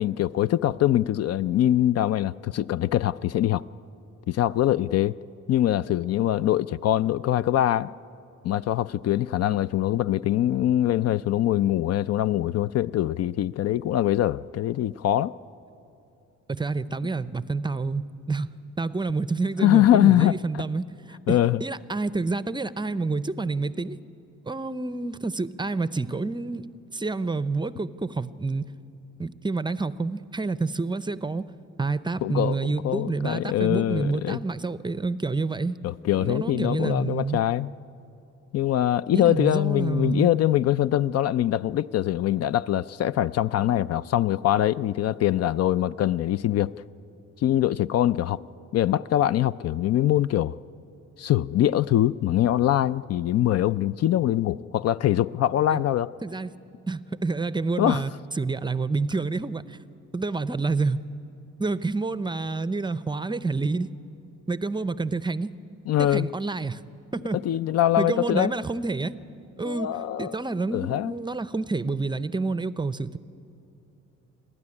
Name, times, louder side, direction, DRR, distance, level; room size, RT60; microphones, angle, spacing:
voice 1, 0.0-3.6 4.3-5.1 5.5-7.9 8.4-15.3 19.6-20.6 21.3-21.6 32.2-32.6 32.8-34.4 35.8-37.7 38.5-46.7 47.4-48.4 48.7-50.6 51.2-56.1 57.8-58.0 65.9-66.3 67.5-68.5 69.6-70.4 70.7-71.1, left 12 dB, 55° left, 16 dB, 0.4 m, -23 dB
voice 2, 16.5-18.5 18.8-24.0 24.5-28.6 29.2-31.5 31.8-35.8 36.2-37.4 39.1-40.3 55.7-55.8 56.2-56.5 56.9-59.8 60.1-61.0 61.6-63.9 64.5-65.5 66.0-66.8 67.1-67.4 68.0-69.2 69.6-73.2, right 3 dB, 15° right, 15 dB, 0.5 m, -28 dB
28.5 x 12.5 x 9.8 m, 2.8 s
cardioid pair, 90°, 30 cm